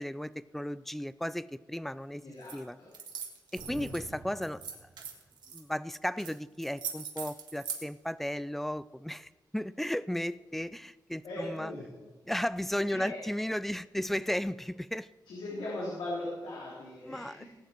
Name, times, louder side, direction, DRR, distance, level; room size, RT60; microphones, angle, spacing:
voice 1, 0.0-2.2 2.5-2.8 3.5-4.9 5.5-11.7 12.3-15.1 17.0-17.4, equal, 5° left, 17 dB, 0.3 m, -35 dB
voice 2, 2.2-2.9 3.7-3.9 11.2-11.9 12.9-13.2 15.3-17.5, left 1 dB, 80° left, -6 dB, 3.8 m, -39 dB
sound 1, 2.4-2.6 2.9-4.0 4.4-5.6 6.2-6.3 6.6-7.8, right 7 dB, 80° right, 2.2 m, -40 dB
sound 2, 3.6-5.5, right 3 dB, 50° right, 1.8 m, -49 dB
19.5 x 9.2 x 4.5 m, 1.3 s
wide cardioid pair, 175°, 8 cm